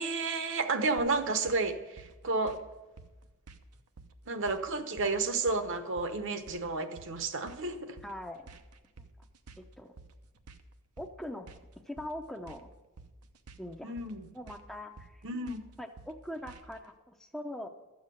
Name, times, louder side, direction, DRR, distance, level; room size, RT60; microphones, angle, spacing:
voice 1, 0.0-2.6 4.3-8.0 13.8-14.2 15.2-15.6, right 3 dB, 55° right, 8 dB, 1.0 m, -31 dB
sound 1, 1.0-16.9, right 3 dB, 85° right, 0.9 m, -53 dB
voice 2, 8.0-8.5 9.0-9.1 9.6-9.9 11.0-11.5 11.9-12.7 13.6-13.9 14.3-15.2 15.8-17.7, left 1 dB, ahead, 4 dB, 0.6 m, -42 dB
13.0 x 7.4 x 7.7 m, 1.1 s
head